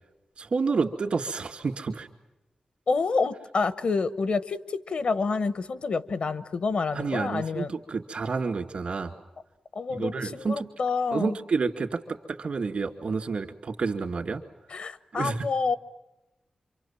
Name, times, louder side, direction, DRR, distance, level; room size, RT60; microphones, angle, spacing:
voice 1, 0.4-2.1 6.9-9.1 9.9-10.7 11.1-12.0 12.3-14.4 15.1-15.4, right 4 dB, 75° right, 6 dB, 2.3 m, -29 dB
voice 2, 2.9-7.7 9.7-11.4 14.7-15.8, left 4 dB, 75° left, 14 dB, 1.0 m, -28 dB
27.0 x 24.5 x 7.5 m, 1.0 s
cardioid pair, 70°, 2 cm